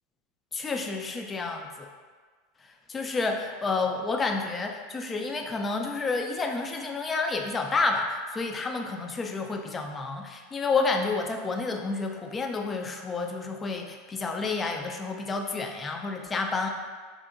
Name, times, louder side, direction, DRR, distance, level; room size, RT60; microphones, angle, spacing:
voice 1, 0.5-1.9 2.6-16.7, left 3 dB, 25° left, 3 dB, 0.3 m, -30 dB
2.7 x 2.6 x 2.4 m, 1.5 s
hypercardioid pair, 85°, 0 cm